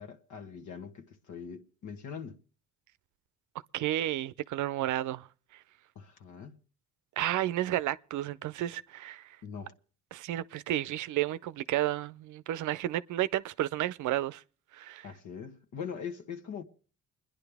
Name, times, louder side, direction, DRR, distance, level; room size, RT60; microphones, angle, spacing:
voice 1, 0.0-2.4 5.9-6.6 9.4-9.7 15.0-16.6, left 7 dB, 75° left, 1.4 m, -42 dB
voice 2, 3.7-5.3 7.2-9.3 10.1-14.4 14.7-15.1, right 13 dB, 75° right, 0.6 m, -32 dB
29.0 x 10.5 x 3.5 m
cardioid pair, 90°, 30 cm